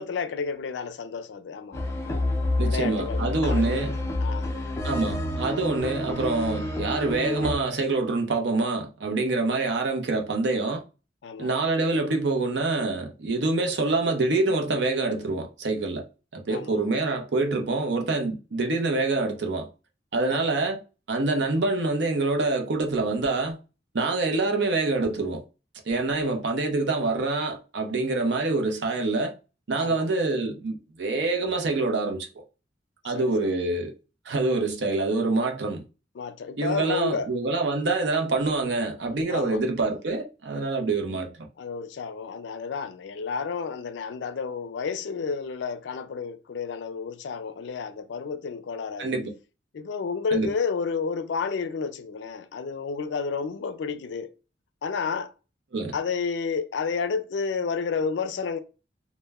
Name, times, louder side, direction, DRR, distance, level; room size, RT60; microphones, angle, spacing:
voice 1, 0.0-1.8 2.6-4.5 11.2-11.5 16.5-16.8 20.3-20.6 26.2-26.4 29.8-30.1 33.1-33.3 35.4-35.5 36.2-37.3 39.3-39.6 41.6-49.1 49.7-54.3 54.8-55.3 55.9-58.6, left 5 dB, 80° left, 0.4 m, -31 dB
sound 1, 1.7-7.6, left 1 dB, 15° left, 0.4 m, -28 dB
voice 2, 2.6-4.0 4.8-10.8 11.4-16.1 16.3-19.7 20.1-20.8 21.1-23.6 23.9-25.4 25.9-29.3 29.7-32.3 33.0-33.9 34.3-35.8 36.6-41.5 49.0-49.3 50.3-50.5 55.7-56.0, right 3 dB, 70° right, 0.6 m, -26 dB
2.1 x 2.1 x 3.4 m
head